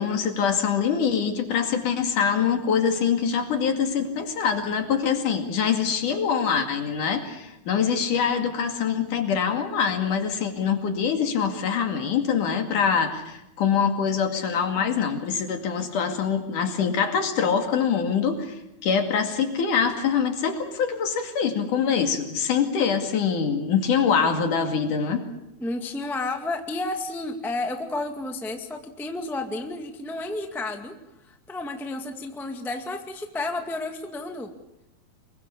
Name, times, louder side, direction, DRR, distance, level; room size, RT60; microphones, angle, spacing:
voice 1, 0.0-25.3, left 7 dB, 60° left, 6 dB, 3.7 m, -24 dB
voice 2, 25.6-30.9 31.2-34.5, left 2 dB, ahead, 5 dB, 1.0 m, -31 dB
25.0 x 22.5 x 7.1 m, 0.86 s
omnidirectional pair, 4.2 m